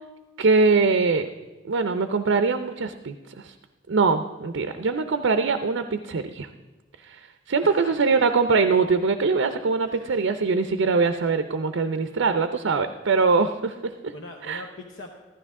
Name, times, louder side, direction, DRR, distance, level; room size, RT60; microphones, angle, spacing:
voice 1, 0.4-1.3 1.7-3.5 3.9-6.5 7.0-7.2 7.5-14.1 14.5-14.6, right 4 dB, 85° right, 8 dB, 0.5 m, -22 dB
voice 2, 7.6-8.2 9.9-10.2 14.1-15.1, left 2 dB, 80° left, 3 dB, 0.9 m, -42 dB
15.0 x 12.5 x 3.6 m, 1.2 s
head